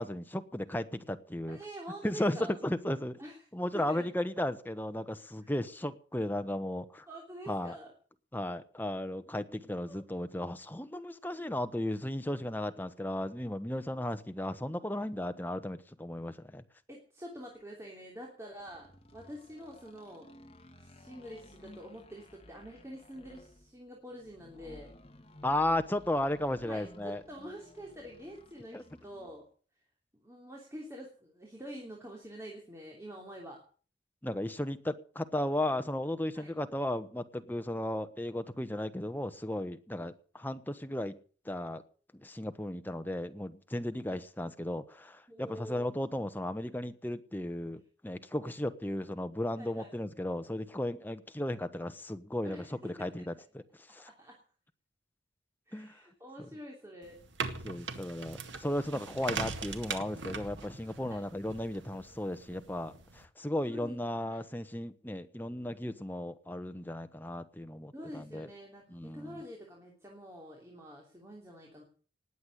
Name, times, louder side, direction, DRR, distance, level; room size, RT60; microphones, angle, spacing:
voice 1, 0.0-1.6 2.0-2.4 2.6-3.2 3.5-7.0 7.5-7.8 8.3-16.6 25.4-27.2 28.7-28.8 34.2-41.1 41.4-41.8 42.2-53.6 53.9-54.1 55.7-56.0 57.6-68.5 68.9-69.4, left 1 dB, 10° left, 9 dB, 1.1 m, -35 dB
voice 2, 1.5-2.6 3.2-3.4 3.7-4.1 5.4-5.5 7.1-7.9 9.3-10.0 14.9-15.0 16.9-20.3 20.8-24.9 26.6-29.4 30.1-33.6 36.3-36.5 40.0-40.1 43.9-44.2 45.3-45.9 49.6-49.9 52.4-53.1 54.0-54.4 55.7-57.2 61.0-61.2 63.7-64.0 64.3-64.4 67.9-71.8, equal, 15° right, -1 dB, 3.1 m, -47 dB
sound 1, 18.6-29.4, left 1 dB, 30° left, 1.7 m, -56 dB
sound 2, 57.0-63.2, right 4 dB, 75° right, 2.0 m, -41 dB
19.0 x 8.2 x 8.3 m, 0.43 s
head